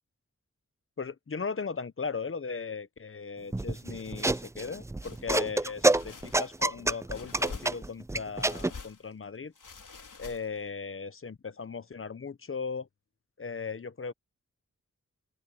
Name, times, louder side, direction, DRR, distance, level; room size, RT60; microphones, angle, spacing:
voice 1, 1.0-9.5 10.2-12.9 13.4-14.1, left 5 dB, 45° left, 0.9 m, -37 dB
sound 1, 3.5-8.7, right 2 dB, 10° right, 0.3 m, -28 dB
sound 2, 5.0-5.3 5.8-6.7 7.1-8.0 8.4-9.1 9.5-10.7, left 5 dB, 85° left, 3.7 m, -46 dB
open air
wide cardioid pair, 80°, 31 cm